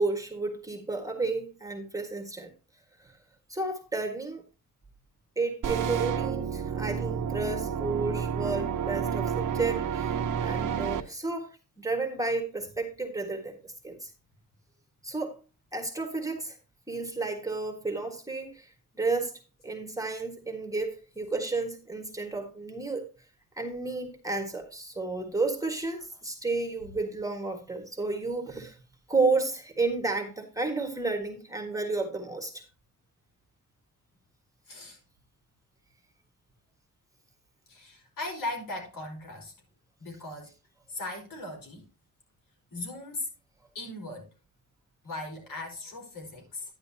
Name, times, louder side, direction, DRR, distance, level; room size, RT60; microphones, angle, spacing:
voice 1, 0.0-2.5 3.0-3.1 3.5-4.4 5.3-10.1 10.4-14.1 15.0-15.4 15.7-16.6 16.9-23.1 23.6-28.8 29.1-32.6, right 3 dB, 10° right, 1.6 m, -32 dB
sound 1, 5.6-11.0, right 7 dB, 70° right, 1.1 m, -30 dB
voice 2, 34.7-35.0 37.7-39.5 40.0-40.5 40.9-41.9 42.7-43.3 43.7-44.3 45.0-46.6, left 2 dB, 80° left, 4.9 m, -38 dB
10.5 x 10.5 x 2.8 m
wide cardioid pair, 175°, 33 cm